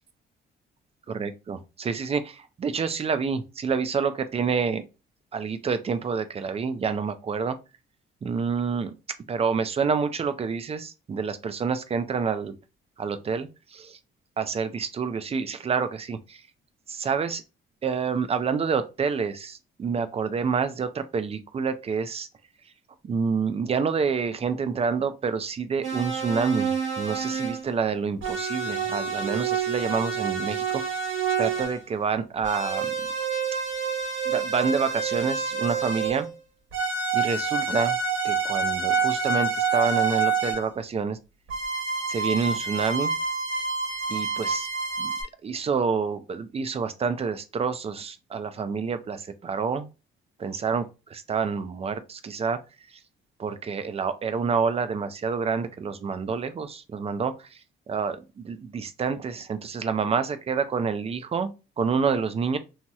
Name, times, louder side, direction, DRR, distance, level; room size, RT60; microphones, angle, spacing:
voice 1, 1.1-4.8 5.3-7.6 8.2-8.9 9.3-12.6 13.0-14.0 14.4-16.4 16.9-17.4 17.8-22.3 23.0-30.8 31.4-32.9 34.3-36.3 37.1-38.0 38.2-41.2 42.1-43.1 44.1-44.7 45.0-45.1 45.4-49.9 50.4-52.6 53.4-57.6 57.9-62.6, right 5 dB, 30° right, 0.4 m, -28 dB
sound 1, 25.8-27.7 28.2-31.8 32.4-36.3 36.7-40.7 41.5-45.2, right 5 dB, 75° right, 1.2 m, -28 dB
2.9 x 2.8 x 2.2 m
cardioid pair, 90°, 20 cm